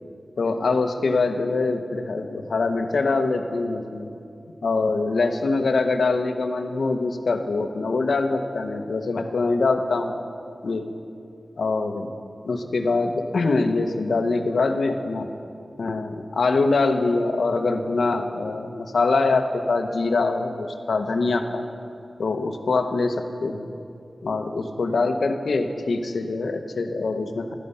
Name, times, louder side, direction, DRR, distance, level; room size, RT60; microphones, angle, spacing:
voice 1, 0.4-4.1 4.6-10.2 10.6-10.9 11.6-12.1 12.4-15.3 15.8-21.6 22.2-23.1 23.4-23.7 24.2-27.5, left 3 dB, 80° left, 6 dB, 1.0 m, -24 dB
15.0 x 13.5 x 5.6 m, 2.5 s
wide cardioid pair, 85°, 0 cm